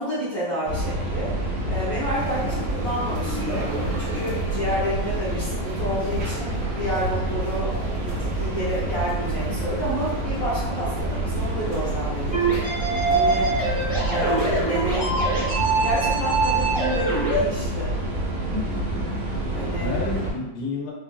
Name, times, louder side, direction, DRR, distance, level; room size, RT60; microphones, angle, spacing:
voice 1, 0.0-3.7 4.0-7.7 8.0-13.6 14.1-17.9 19.5-19.9, equal, 65° left, -11 dB, 1.1 m, -30 dB
sound 1, 0.6-20.3, right 1 dB, 60° right, 1.4 m, -28 dB
sound 2, 2.2-14.9, right 2 dB, 85° right, 1.4 m, -38 dB
sound 3, 12.3-17.4, right 3 dB, 40° right, 0.7 m, -24 dB
voice 2, 18.5-19.2 19.8-20.9, left 3 dB, 90° left, -2 dB, 2.5 m, -31 dB
6.0 x 2.2 x 2.3 m, 0.99 s
omnidirectional pair, 3.7 m